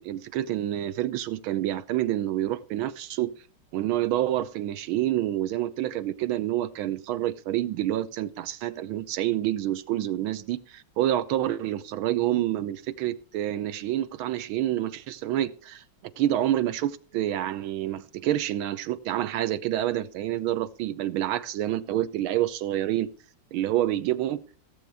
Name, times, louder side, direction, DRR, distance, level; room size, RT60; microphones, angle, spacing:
voice 1, 0.0-3.3 3.7-15.8 16.2-23.1 23.5-24.4, right 13 dB, 80° right, 1.5 m, -28 dB
17.5 x 7.2 x 3.5 m
omnidirectional pair, 2.3 m